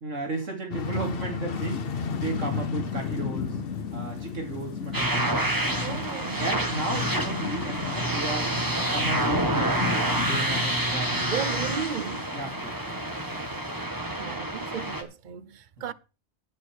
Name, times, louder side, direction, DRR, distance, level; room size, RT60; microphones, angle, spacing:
voice 1, 0.0-3.5 3.9-5.3 5.7-6.1 6.4-11.3 12.3-13.0 15.8-15.9, right 2 dB, 90° right, 3.4 m, -34 dB
sound 1, 0.7-12.1, left 5 dB, 55° left, 1.1 m, -38 dB
Thunderstorm / Rain, 1.6-13.9, left 6 dB, 75° left, 1.5 m, -36 dB
sound 2, 4.9-15.0, right 1 dB, 15° right, 1.7 m, -28 dB
voice 2, 5.8-6.5 11.3-12.3 14.2-15.9, right 7 dB, 45° right, 0.9 m, -35 dB
11.0 x 9.8 x 4.7 m
omnidirectional pair, 1.3 m